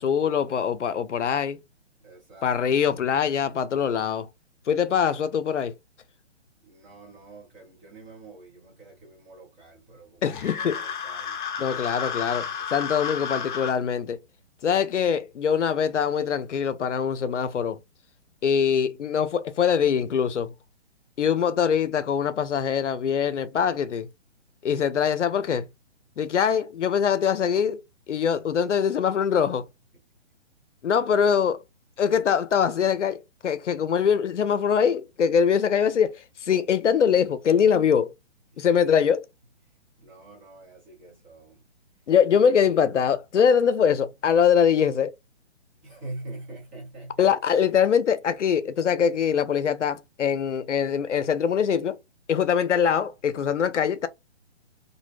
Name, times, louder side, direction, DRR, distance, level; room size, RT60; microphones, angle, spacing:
voice 1, 0.0-1.6 2.4-4.3 4.7-5.7 10.2-10.8 11.6-14.2 14.6-17.8 18.4-20.5 21.2-24.1 24.6-25.7 26.2-27.8 28.1-29.6 30.8-31.6 32.0-38.1 38.6-39.3 42.1-45.1 47.2-52.0 52.3-54.1, left 7 dB, 85° left, 0.5 m, -23 dB
voice 2, 2.0-2.6 6.6-11.4 12.3-12.7 14.9-15.1 28.5-28.6 30.9-31.0 38.5-38.8 39.6-41.6 45.8-47.3, right 2 dB, 10° right, 0.5 m, -45 dB
sound 1, 10.2-13.8, left 7 dB, 45° left, 0.7 m, -32 dB
2.6 x 2.0 x 2.4 m
figure-of-eight pair, 135°, 35 cm